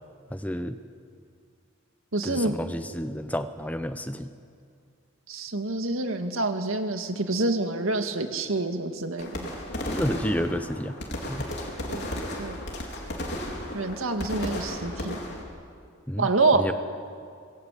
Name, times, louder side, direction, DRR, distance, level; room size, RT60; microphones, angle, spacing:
voice 1, 0.3-0.8 2.2-4.3 9.4-9.5 9.9-11.0 11.3-11.5 16.1-16.7, equal, 5° left, 10 dB, 0.8 m, -30 dB
voice 2, 2.1-2.6 5.3-9.3 11.9-12.0 12.4-12.6 13.7-15.2 16.2-16.7, right 3 dB, 80° right, 6 dB, 2.1 m, -27 dB
sound 1, 9.2-15.4, left 1 dB, 50° left, 4.1 m, -34 dB
26.0 x 21.0 x 8.5 m, 2.3 s
head